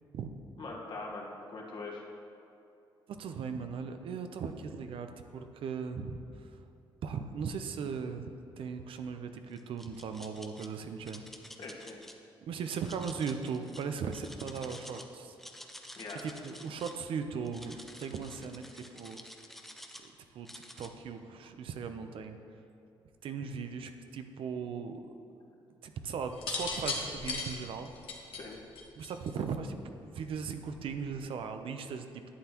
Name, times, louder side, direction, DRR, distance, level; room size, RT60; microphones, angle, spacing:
voice 1, 0.6-2.0 11.6-12.0 16.0-16.2 28.3-28.6, left 3 dB, 55° left, -3 dB, 1.7 m, -42 dB
voice 2, 3.1-6.2 7.0-11.2 12.4-15.4 16.2-18.6 18.9-19.2 20.3-22.4 23.2-25.0 25.8-27.9 29.0-29.8 30.1-32.1, right 6 dB, 70° right, 7 dB, 0.6 m, -38 dB
sound 1, 9.5-10.7 11.0-12.1 12.6-15.1 15.3-17.0 17.4-20.1 20.4-20.9, equal, 5° left, 0.7 m, -50 dB
sound 2, 26.3-29.5 30.6-30.9, left 3 dB, 75° left, 1.4 m, -36 dB
11.5 x 8.2 x 3.0 m, 2.7 s
cardioid pair, 80°, 9 cm